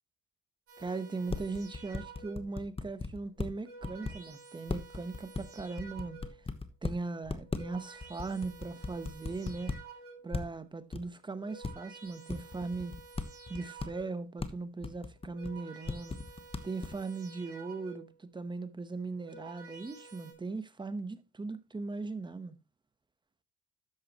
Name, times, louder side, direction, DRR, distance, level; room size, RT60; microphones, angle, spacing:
sound 1, 0.7-2.6 3.3-6.5 7.2-10.4 11.1-14.3 15.0-18.2 19.0-20.3, right 4 dB, 45° right, 6.4 m, -52 dB
voice 1, 0.8-6.2 6.8-9.8 10.2-12.9 13.5-16.2 16.6-22.6, right 3 dB, 15° right, 1.1 m, -39 dB
sound 2, 0.9-1.0 1.3-3.5 3.8-4.1 4.7-6.9 7.2-7.8 8.0-9.7 10.3-10.5 10.9-11.0 11.6-11.7 12.3-14.0 14.4-14.5 14.8-15.5 15.9-16.9, left 4 dB, 20° left, 1.1 m, -36 dB
12.5 x 8.4 x 3.0 m
cardioid pair, 115°, 30 cm